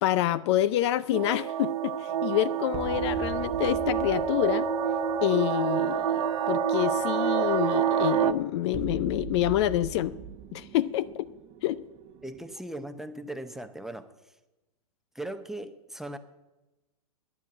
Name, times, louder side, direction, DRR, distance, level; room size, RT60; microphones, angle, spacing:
voice 1, 0.0-4.7 5.2-10.1 10.5-11.3 11.6-11.8, left 13 dB, 50° left, 16 dB, 0.5 m, -27 dB
sound 1, 1.1-8.3, right 11 dB, 70° right, 0.8 m, -28 dB
sound 2, 2.1-12.6, right 5 dB, 30° right, 0.9 m, -43 dB
sound 3, 3.5-8.5, left 3 dB, 25° left, 0.9 m, -36 dB
voice 2, 12.2-14.1 15.1-16.2, right 1 dB, ahead, 9 dB, 0.7 m, -38 dB
11.0 x 9.8 x 8.5 m, 1.1 s
hypercardioid pair, 125°, 19 cm